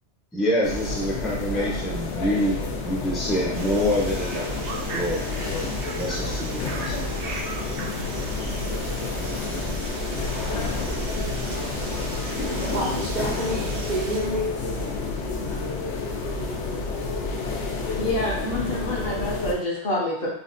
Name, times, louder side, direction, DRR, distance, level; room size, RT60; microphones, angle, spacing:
voice 1, 0.3-4.5 4.9-7.1, left 1 dB, ahead, -4 dB, 0.4 m, -27 dB
sound 1, 0.6-19.5, left 3 dB, 85° left, 0.9 m, -29 dB
sound 2, 3.5-14.2, right 2 dB, 75° right, 0.9 m, -35 dB
voice 2, 12.6-14.5, right 1 dB, 60° right, -4 dB, 0.5 m, -30 dB
voice 3, 17.9-20.3, left 1 dB, 60° left, -4 dB, 1.1 m, -27 dB
3.9 x 2.2 x 2.6 m, 0.67 s
omnidirectional pair, 1.2 m